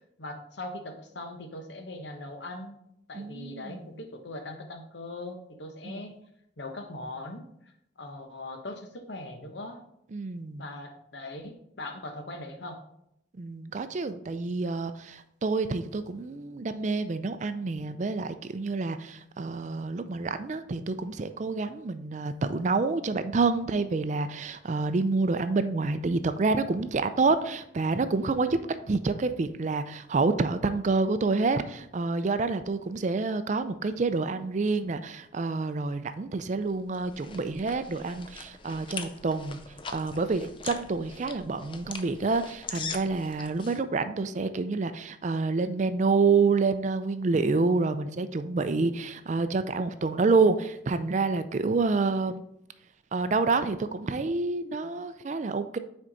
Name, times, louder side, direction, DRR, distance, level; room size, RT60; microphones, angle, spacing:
voice 1, 0.0-2.8 3.1-6.2 6.6-7.5 8.0-9.8 10.6-12.8, left 2 dB, 75° left, 5 dB, 0.9 m, -40 dB
voice 2, 3.1-3.9 5.8-6.0 10.1-10.7 13.4-28.6 28.9-39.6 39.9-52.4 53.1-55.8, right 3 dB, 40° right, 11 dB, 0.4 m, -28 dB
sound 1, 36.7-43.8, left 5 dB, 30° left, 0.5 m, -42 dB
6.2 x 4.5 x 3.9 m, 0.76 s
head